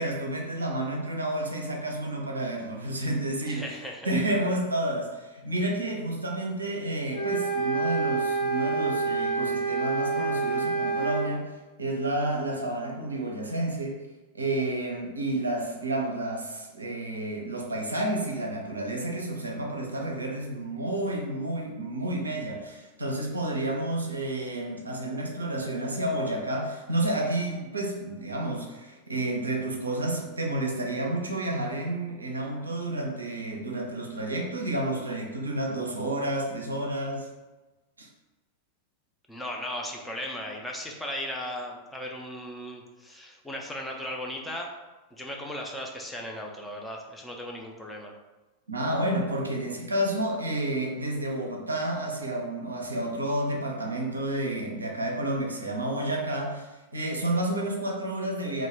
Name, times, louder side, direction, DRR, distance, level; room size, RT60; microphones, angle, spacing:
voice 1, 0.0-3.8 4.0-11.5 11.8-14.0 14.3-37.3 38.0-38.1 48.7-58.7, right 1 dB, 80° right, 0 dB, 0.4 m, -30 dB
voice 2, 3.5-4.1 39.3-44.7 45.1-48.1, left 1 dB, 5° left, 0 dB, 0.4 m, -37 dB
sound 1, 7.1-11.3, right 4 dB, 80° left, 0.9 m, -27 dB
2.2 x 2.1 x 3.1 m, 1.2 s
figure-of-eight pair, 90°, 0 cm